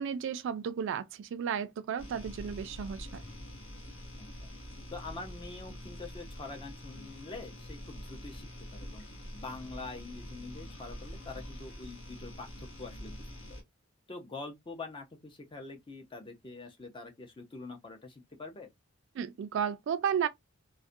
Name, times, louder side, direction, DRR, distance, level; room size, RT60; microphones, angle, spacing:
voice 1, 0.0-3.2 19.1-20.3, right 7 dB, 60° right, 0.3 m, -33 dB
sound 1, 2.0-13.6, left 1 dB, 70° left, 0.8 m, -45 dB
voice 2, 4.2-4.5 4.9-9.0 9.3-13.2 13.5-13.6 14.1-18.7, left 3 dB, 25° left, 0.6 m, -45 dB
2.3 x 2.1 x 2.5 m
head